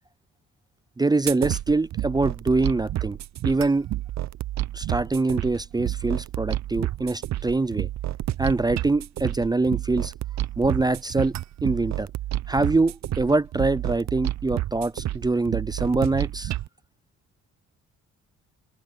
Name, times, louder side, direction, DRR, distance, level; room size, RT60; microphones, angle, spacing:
voice 1, 1.0-3.2 3.4-3.9 4.7-7.9 8.4-10.1 10.6-12.1 12.5-16.5, right 3 dB, 15° right, 0.4 m, -24 dB
sound 1, 1.3-16.7, right 14 dB, 65° right, 0.7 m, -30 dB
open air
cardioid pair, 90°, 30 cm